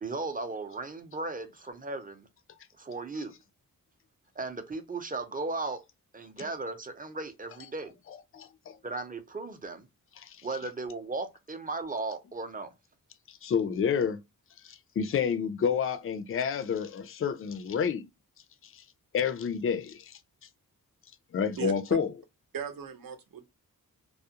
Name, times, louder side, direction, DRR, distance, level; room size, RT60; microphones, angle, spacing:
voice 1, 0.0-2.3 2.8-3.3 4.4-5.8 6.1-7.9 8.8-9.9 10.4-12.7, right 3 dB, 25° right, 0.5 m, -36 dB
voice 2, 8.1-8.8 10.2-10.4 13.3-14.2 14.6-18.1 18.6-18.8 19.1-20.2 21.3-22.1, left 7 dB, 40° left, 0.4 m, -29 dB
voice 3, 21.6-22.0 22.5-23.5, right 8 dB, 70° right, 0.7 m, -37 dB
2.3 x 2.0 x 2.8 m
cardioid pair, 75°, 36 cm